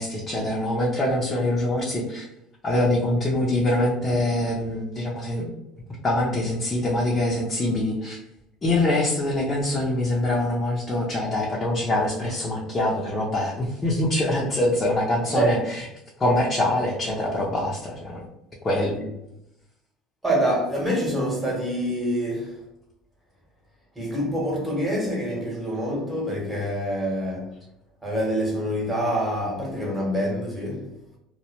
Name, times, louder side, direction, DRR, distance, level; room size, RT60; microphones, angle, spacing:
voice 1, 0.0-2.3 2.6-5.5 6.0-8.2 8.6-15.9 16.2-18.2 18.6-19.0, left 1 dB, 30° left, 0.5 m, -24 dB
voice 2, 20.2-22.6 24.0-27.5 28.0-30.9, equal, 10° right, 1.0 m, -26 dB
2.1 x 2.0 x 2.9 m
supercardioid pair, 95°, 0 cm